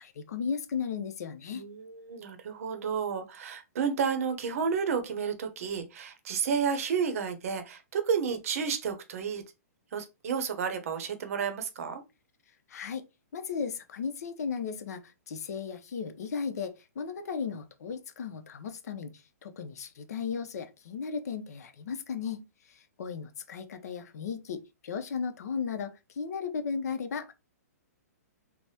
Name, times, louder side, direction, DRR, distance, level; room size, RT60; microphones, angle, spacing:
voice 1, 0.0-1.7 12.7-13.0 13.3-27.3, left 6 dB, 70° left, 0.6 m, -36 dB
voice 2, 1.5-9.4 9.9-12.0, right 6 dB, 60° right, 0.7 m, -31 dB
3.3 x 2.1 x 2.7 m
hypercardioid pair, 150°, 9 cm